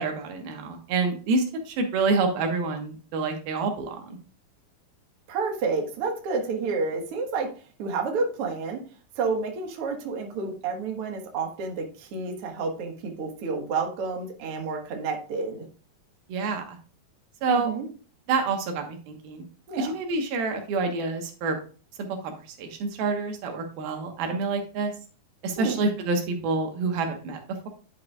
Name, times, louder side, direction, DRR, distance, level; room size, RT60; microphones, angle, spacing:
voice 1, 0.0-4.2 16.3-16.8 17.4-17.7 18.3-19.4 19.8-21.6 22.0-24.9 25.4-27.4, right 4 dB, 90° right, 4 dB, 3.2 m, -27 dB
voice 2, 5.3-7.5 7.8-8.8 9.2-15.7 17.5-17.9 19.7-19.9 25.6-25.8, right 4 dB, 50° right, 2 dB, 2.0 m, -30 dB
10.5 x 7.5 x 2.4 m, 0.37 s
omnidirectional pair, 4.2 m